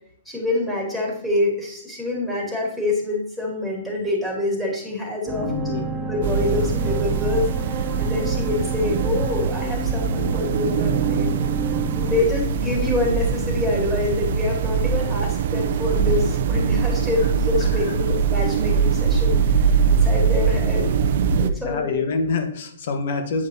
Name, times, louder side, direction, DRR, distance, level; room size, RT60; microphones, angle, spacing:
voice 1, 0.3-5.5 6.1-11.4 12.0-20.9 21.4-22.0, left 2 dB, 5° left, -3 dB, 2.4 m, -26 dB
sound 1, 5.3-12.2, right 4 dB, 25° right, 0.7 m, -30 dB
voice 2, 5.4-6.1 12.2-12.3 17.6-18.0 21.6-23.5, left 4 dB, 60° left, 5 dB, 1.2 m, -27 dB
sound 2, 6.2-21.5, right 6 dB, 55° right, 0.5 m, -22 dB
8.6 x 5.2 x 2.7 m, 0.69 s
hypercardioid pair, 135°, 0 cm